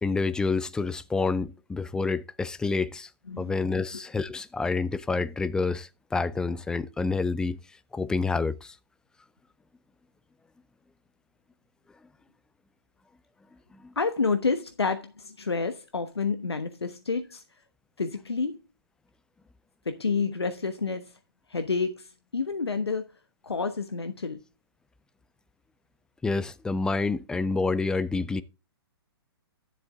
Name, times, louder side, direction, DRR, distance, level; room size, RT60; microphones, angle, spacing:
voice 1, 0.0-3.1 3.4-7.6 7.9-8.7 13.8-13.9 26.2-28.4, left 4 dB, 5° left, 0.4 m, -28 dB
voice 2, 14.0-17.4 18.0-18.6 19.9-21.1 21.5-22.1 22.3-23.0 23.4-24.4, left 4 dB, 85° left, 1.1 m, -29 dB
11.0 x 7.5 x 3.6 m
figure-of-eight pair, 125°, 13 cm